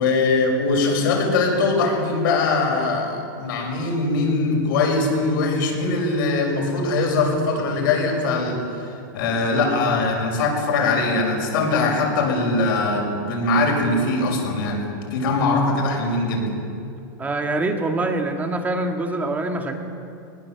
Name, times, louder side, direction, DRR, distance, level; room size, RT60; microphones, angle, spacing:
voice 1, 0.0-16.5, left 3 dB, 70° left, 2 dB, 6.2 m, -21 dB
voice 2, 17.2-19.7, right 2 dB, 15° right, 3 dB, 2.1 m, -24 dB
21.5 x 20.0 x 7.4 m, 2.5 s
supercardioid pair, 145°, 12 cm